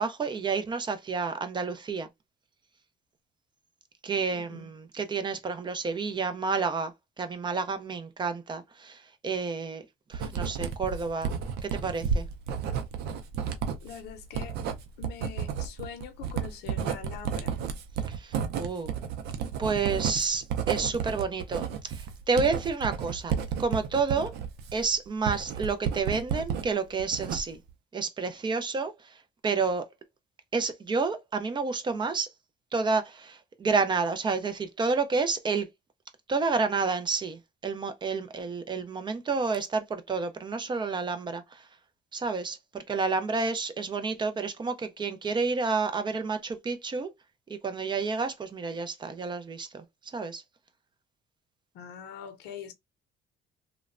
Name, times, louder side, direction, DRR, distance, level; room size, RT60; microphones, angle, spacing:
voice 1, 0.0-2.1 4.0-9.8 10.1-11.3 11.6-12.3 18.1-18.9 19.6-24.3 24.7-27.6 27.9-29.2 29.4-29.9 30.5-32.3 32.7-35.7 36.3-41.7 42.1-42.6 42.9-47.1 47.5-49.8 50.1-50.4, right 4 dB, 25° right, 0.5 m, -30 dB
voice 2, 4.3-4.7 13.8-14.6 15.0-17.6 51.7-52.7, left 8 dB, 90° left, 0.6 m, -43 dB
Writing, 10.1-26.7 27.0-27.7, right 7 dB, 80° right, 0.5 m, -32 dB
3.0 x 2.1 x 2.4 m
cardioid pair, 110°, 17 cm